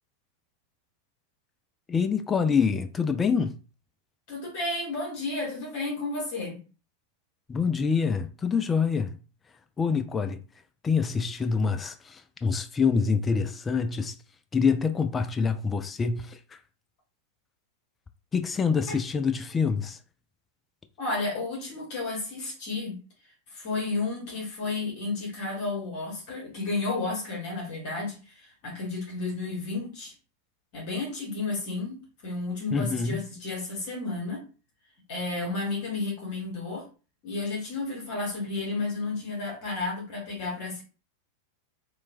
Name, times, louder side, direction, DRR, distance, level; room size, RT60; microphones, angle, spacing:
voice 1, 1.9-3.6 7.5-9.2 9.8-10.4 10.8-14.1 14.5-16.6 18.3-20.0 32.7-33.2, left 5 dB, 20° left, 0.3 m, -26 dB
voice 2, 4.3-6.6 18.9-19.0 21.0-23.0 23.5-30.1 30.7-34.4 35.1-36.9 37.2-40.8, left 3 dB, 45° left, 1.1 m, -32 dB
3.0 x 2.2 x 2.6 m
figure-of-eight pair, 90°, 0 cm